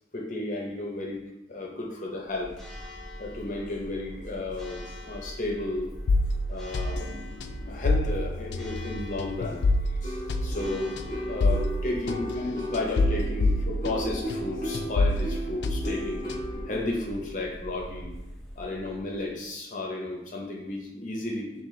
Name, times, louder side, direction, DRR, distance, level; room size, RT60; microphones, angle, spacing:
voice 1, 0.1-1.2 1.5-2.5 3.2-5.9 6.5-7.1 7.7-9.7 10.0-11.0 11.3-16.3 16.7-18.1 18.6-21.6, left 2 dB, 45° left, -2 dB, 0.7 m, -33 dB
Church bell, 2.2-19.5, equal, ahead, 0.6 m, -42 dB
sound 1, 6.1-14.5 14.7-16.7, left 2 dB, 75° left, 0.3 m, -28 dB
sound 2, 10.0-16.8, equal, 15° left, 1.0 m, -35 dB
4.2 x 2.9 x 3.2 m, 0.90 s
head